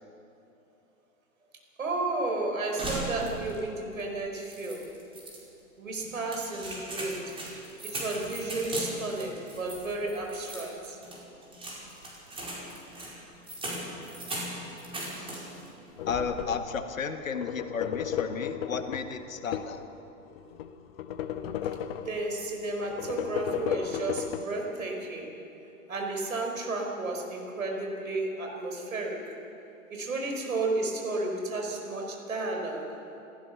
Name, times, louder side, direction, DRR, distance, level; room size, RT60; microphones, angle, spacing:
voice 1, 1.8-4.9 5.8-7.4 7.8-11.0 21.6-21.7 22.0-25.4 25.9-29.4 29.9-32.8, right 2 dB, 70° right, 1 dB, 5.0 m, -32 dB
sound 1, 2.8-3.7 4.0-4.1 4.5-5.4 6.0-15.7 16.0-16.5, right 1 dB, 15° right, 5.1 m, -38 dB
sound 2, 16.0-16.8 17.2-19.9 20.3-22.3 22.8-24.4, left 9 dB, 45° left, 1.1 m, -34 dB
voice 2, 16.1-19.8, left 6 dB, 70° left, 8 dB, 1.7 m, -33 dB
28.5 x 14.5 x 6.9 m, 2.8 s
figure-of-eight pair, 105°, 42 cm